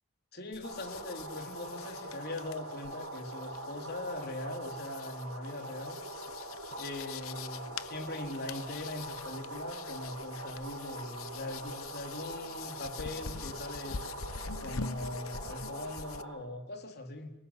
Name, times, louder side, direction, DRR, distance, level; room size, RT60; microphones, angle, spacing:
voice 1, 0.3-6.0 6.7-14.0 14.6-17.3, left 1 dB, 50° left, 4 dB, 3.8 m, -41 dB
sound 1, 0.5-16.2, left 6 dB, 90° left, 1.0 m, -45 dB
sound 2, 0.6-16.4, right 1 dB, 75° right, 7.4 m, -43 dB
29.5 x 19.5 x 9.9 m, 0.90 s
head